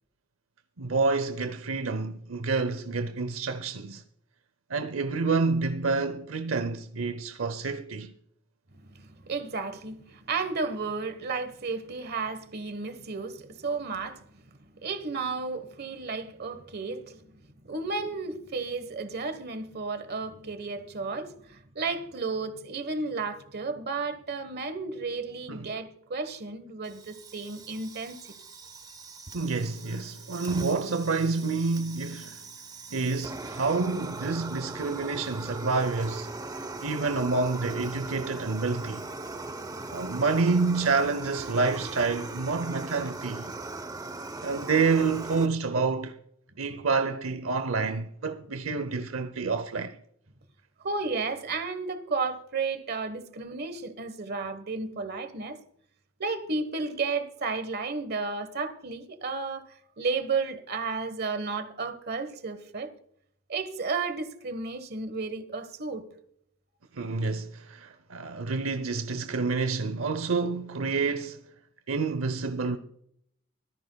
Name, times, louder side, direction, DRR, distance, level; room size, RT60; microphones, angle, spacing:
voice 1, 0.8-4.0 4.7-8.1 25.5-25.7 29.3-32.4 32.9-36.3 36.8-39.1 39.9-43.5 44.4-46.2 46.6-50.0 66.9-71.4 71.9-72.8, right 4 dB, 85° right, 0.7 m, -28 dB
voice 2, 8.7-17.3 17.6-28.2 39.3-40.1 50.8-55.6 56.2-62.9 63.5-66.0, right 4 dB, 50° right, 1.3 m, -33 dB
Fire, 26.8-45.5, right 3 dB, 20° right, 0.8 m, -40 dB
24.0 x 9.6 x 2.3 m
head